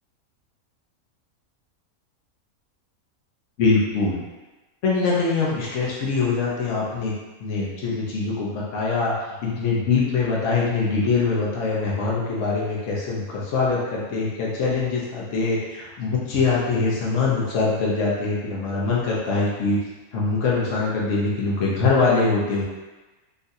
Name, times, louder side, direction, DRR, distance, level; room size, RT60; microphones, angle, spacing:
voice 1, 3.6-4.2 4.8-7.1 7.4-9.1 9.4-19.8 20.1-22.6, left 4 dB, 60° left, -5 dB, 1.1 m, -23 dB
3.9 x 2.4 x 2.7 m, 1.2 s
omnidirectional pair, 1.5 m